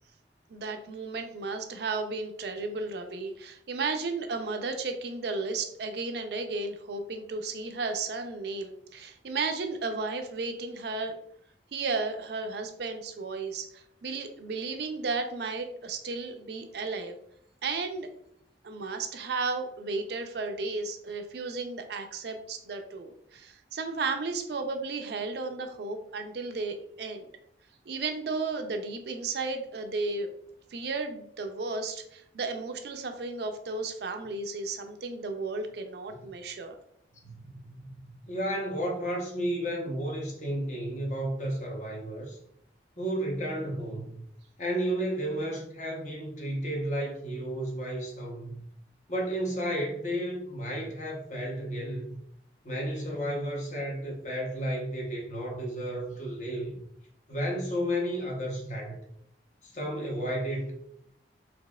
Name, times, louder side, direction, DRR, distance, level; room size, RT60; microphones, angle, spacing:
voice 1, 0.5-11.2 11.7-17.2 17.6-18.1 18.6-27.3 27.9-30.3 30.7-36.8, right 3 dB, 65° right, 6 dB, 0.4 m, -34 dB
voice 2, 37.2-37.9 38.3-42.4 43.0-44.2 44.6-48.6 49.1-52.2 52.6-56.8 57.3-59.0 59.6-60.7, equal, 40° left, -1 dB, 0.8 m, -32 dB
4.1 x 2.8 x 2.3 m, 0.69 s
head